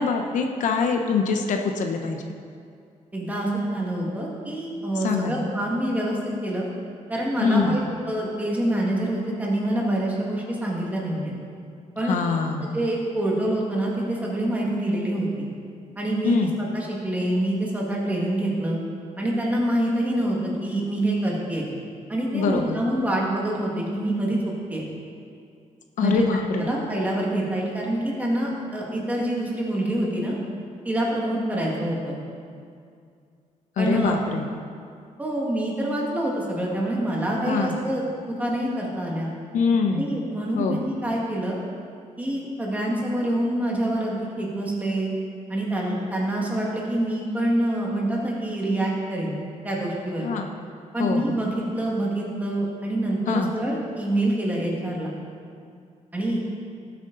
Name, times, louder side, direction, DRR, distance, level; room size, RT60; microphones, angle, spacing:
voice 1, 0.0-2.3 5.0-5.4 7.4-7.8 12.1-12.8 16.2-16.5 22.3-22.8 26.0-26.7 33.8-34.5 37.5-37.8 39.5-40.1 40.6-40.8 50.2-50.4 51.0-51.4 53.3-53.5, left 5 dB, 70° left, 4 dB, 0.9 m, -24 dB
voice 2, 3.1-6.7 7.1-11.3 12.0-12.1 12.7-15.5 16.0-18.8 19.2-21.7 22.1-24.8 26.0-26.2 26.5-30.4 30.8-32.2 33.8-34.2 35.2-39.3 39.9-41.6 42.2-45.1 45.5-49.4 49.6-50.3 50.9-55.1 56.1-56.4, right 1 dB, 10° right, -3 dB, 1.9 m, -26 dB
18.0 x 8.1 x 4.0 m, 2.3 s
wide cardioid pair, 180°, 13 cm